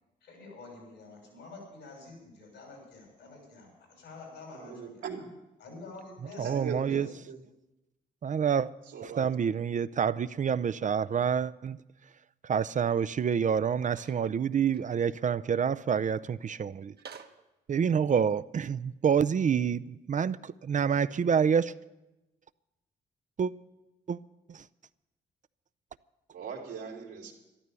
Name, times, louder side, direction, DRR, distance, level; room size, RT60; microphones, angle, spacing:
voice 1, 0.2-5.0 5.6-7.1, left 3 dB, 80° left, 6.1 m, -48 dB
voice 2, 4.5-5.2 6.4-7.0 7.3-7.4 8.9-9.3 26.3-27.3, right 6 dB, 80° right, 2.8 m, -39 dB
voice 3, 6.4-7.1 8.2-8.7 9.0-11.8 12.4-16.9 17.7-21.7 23.4-23.5 24.1-24.2 24.5-24.6, right 7 dB, 40° right, 0.5 m, -27 dB
sound 1, 13.9-14.2 14.7-14.8 17.0-17.5, right 6 dB, 60° right, 1.2 m, -48 dB
12.5 x 12.0 x 6.9 m
supercardioid pair, 50°, 19 cm